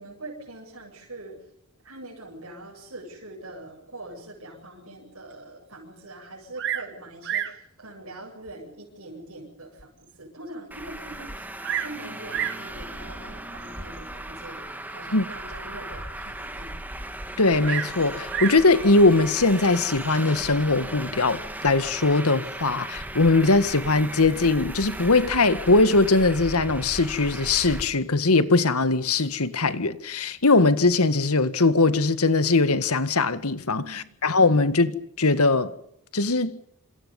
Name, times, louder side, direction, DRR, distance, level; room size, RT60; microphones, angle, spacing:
voice 1, 0.0-1.4 1.8-9.9 10.2-16.8 33.7-34.1, right 2 dB, 70° right, 7.9 m, -43 dB
Bird vocalization bird call bird song, 6.6-6.9 7.2-7.6 8.5-8.6 9.2-9.3 9.8-9.9 10.1-10.2 11.3-12.0 12.3-12.7 13.6-14.0 17.6-18.7 19.7-20.2, right 10 dB, 55° right, 1.9 m, -31 dB
Traffic noise roadway noise, 10.7-27.8, right 1 dB, 10° right, 2.4 m, -37 dB
voice 2, 17.4-35.7 36.1-36.6, left 3 dB, 85° left, 1.8 m, -21 dB
28.0 x 27.5 x 5.5 m
head